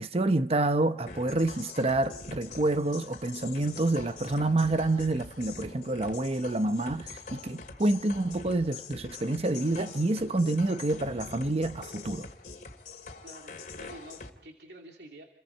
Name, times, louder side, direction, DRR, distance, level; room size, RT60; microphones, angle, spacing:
voice 1, 0.0-12.3, right 2 dB, 35° right, 0.8 m, -28 dB
sound 1, 1.1-14.3, left 4 dB, 45° left, 2.6 m, -44 dB
voice 2, 13.2-15.2, right 1 dB, 70° right, 2.7 m, -49 dB
29.5 x 22.5 x 4.5 m
head